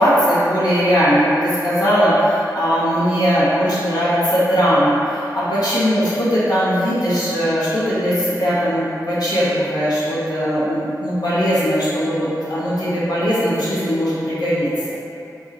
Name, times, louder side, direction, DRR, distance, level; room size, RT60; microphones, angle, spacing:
voice 1, 0.0-15.0, equal, 65° left, -12 dB, 1.3 m, -19 dB
3.9 x 2.6 x 4.1 m, 2.7 s
wide cardioid pair, 100°, 7 cm